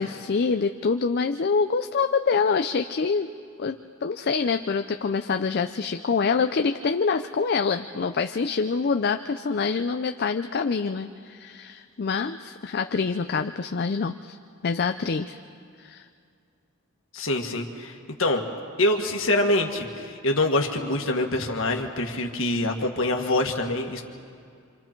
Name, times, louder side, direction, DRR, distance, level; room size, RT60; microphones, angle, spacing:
voice 1, 0.0-3.3 3.6-14.4 14.6-15.4 15.8-16.1 21.3-21.5, left 5 dB, 50° left, 7 dB, 0.4 m, -26 dB
voice 2, 17.1-18.4 18.8-24.0, left 1 dB, 65° left, 2 dB, 1.7 m, -25 dB
26.5 x 26.5 x 4.5 m, 2.3 s
head